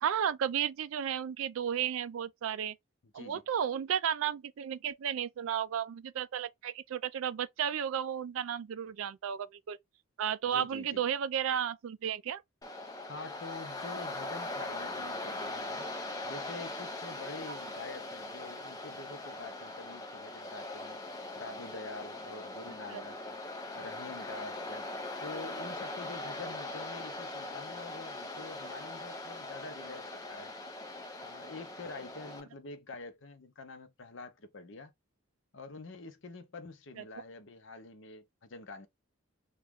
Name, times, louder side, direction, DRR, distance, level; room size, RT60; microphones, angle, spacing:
voice 1, 0.0-2.8 3.1-9.8 10.2-12.4 22.9-23.0 37.0-37.1, right 9 dB, 70° right, 0.3 m, -33 dB
voice 2, 10.5-11.0 13.0-15.9 16.2-21.0 21.4-23.4 23.7-24.8 25.2-30.5 31.2-34.9 35.5-38.9, left 3 dB, 60° left, 0.6 m, -46 dB
Waves surf, 12.6-32.4, left 2 dB, 15° left, 0.5 m, -41 dB
3.0 x 2.3 x 3.5 m
head